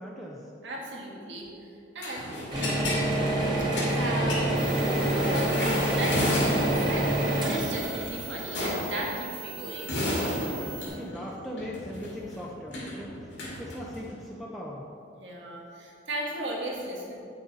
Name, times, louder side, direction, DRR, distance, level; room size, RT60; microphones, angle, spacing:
voice 1, 0.0-0.5 10.6-14.9, left 1 dB, ahead, -4 dB, 0.6 m, -40 dB
voice 2, 0.6-1.5 1.9-2.3 3.9-7.1 7.4-10.0 15.2-17.1, right 1 dB, 80° right, -2 dB, 1.7 m, -35 dB
sound 1, 2.0-3.1 3.4-7.0 8.4-9.1 9.6-14.1, left 1 dB, 85° left, 2.0 m, -33 dB
sound 2, 2.5-9.4, right 1 dB, 25° right, 1.9 m, -27 dB
sound 3, 4.5-10.9, right 6 dB, 60° right, 1.7 m, -42 dB
8.5 x 6.3 x 4.1 m, 2.7 s
head